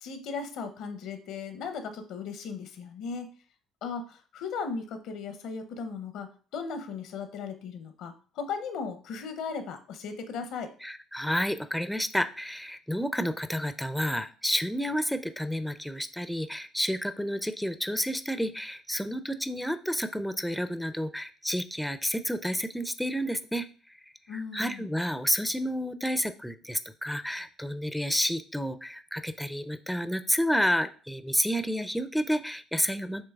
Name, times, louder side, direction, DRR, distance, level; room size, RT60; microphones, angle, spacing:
voice 1, 0.0-3.3 3.8-10.7 24.3-24.9, left 5 dB, 65° left, 8 dB, 0.7 m, -37 dB
voice 2, 10.8-24.0 24.3-33.2, equal, ahead, 11 dB, 0.4 m, -30 dB
7.4 x 3.0 x 2.4 m, 0.40 s
hypercardioid pair, 60°, 0 cm